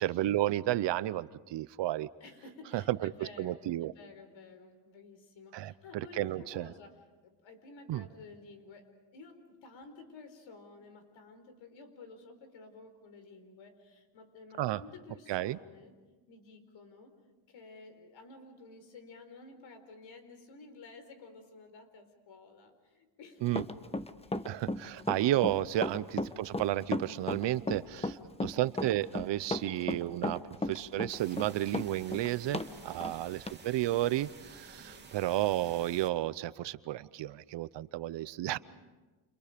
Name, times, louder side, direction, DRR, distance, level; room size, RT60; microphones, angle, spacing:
voice 1, 0.0-2.1 2.7-3.1 3.4-3.9 5.5-5.7 6.2-6.7 7.9-8.0 14.6-14.8 15.3-15.6 23.4-23.6 24.4-38.6, right 14 dB, 60° right, 17 dB, 0.8 m, -32 dB
voice 2, 2.2-16.0 16.3-17.1 17.5-23.6 24.3-24.6 27.9-28.3 32.6-33.2 34.7-35.2 38.5-38.6, left 3 dB, 65° left, 8 dB, 4.7 m, -53 dB
Run, 23.5-32.7 33.0-33.1 33.5-33.6, left 2 dB, 15° left, 1.1 m, -34 dB
sound 1, 31.1-36.1, right 4 dB, 20° right, 3.0 m, -52 dB
30.0 x 29.5 x 5.2 m, 1.2 s
cardioid pair, 110°, 48 cm